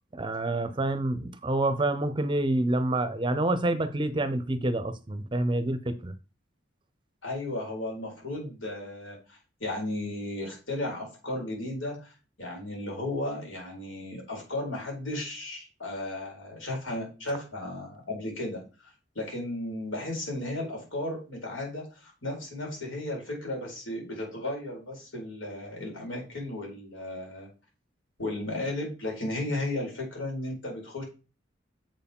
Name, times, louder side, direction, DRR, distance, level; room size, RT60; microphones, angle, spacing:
voice 1, 0.1-6.1, right 2 dB, 25° right, 0.6 m, -27 dB
voice 2, 7.2-27.5 28.2-31.0, left 1 dB, 90° left, 4.2 m, -35 dB
7.5 x 4.7 x 5.3 m
head